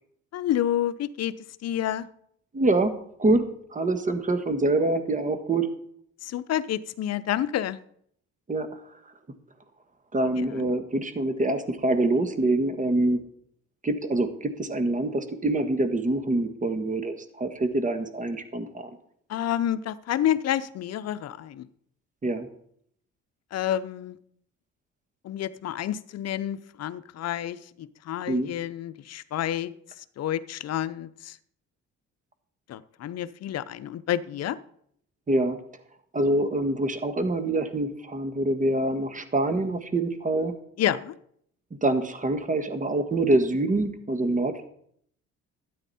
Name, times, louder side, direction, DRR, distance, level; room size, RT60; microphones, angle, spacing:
voice 1, 0.3-1.3 1.6-2.1 6.2-7.8 10.4-10.7 19.3-21.7 23.5-24.2 25.2-31.4 32.7-34.6 40.8-41.1, left 11 dB, 60° left, 15 dB, 0.7 m, -29 dB
voice 2, 2.5-2.9 3.2-3.4 3.7-5.7 8.5-8.7 10.1-13.2 13.8-18.9 22.2-22.5 28.3-28.5 35.3-35.6 36.1-40.5 41.8-44.7, right 2 dB, 25° right, 8 dB, 1.6 m, -25 dB
12.5 x 9.3 x 4.2 m, 0.68 s
cardioid pair, 95°, 30 cm